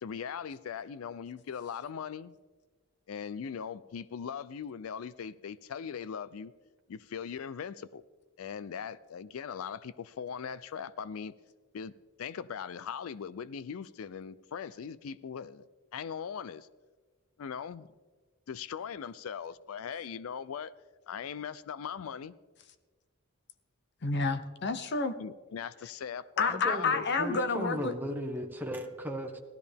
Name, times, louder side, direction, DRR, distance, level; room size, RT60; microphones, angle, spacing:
voice 1, 0.0-2.3 3.1-6.5 6.9-8.0 8.4-11.3 11.7-11.9 12.2-15.7 15.9-16.7 17.4-17.9 18.5-20.7 21.1-22.3 25.2-27.1, left 7 dB, 75° left, 0.4 m, -40 dB
voice 2, 24.0-25.1 26.4-27.9, left 4 dB, 55° left, 0.8 m, -29 dB
voice 3, 26.5-29.4, equal, 10° right, 1.2 m, -36 dB
17.0 x 13.0 x 3.5 m
head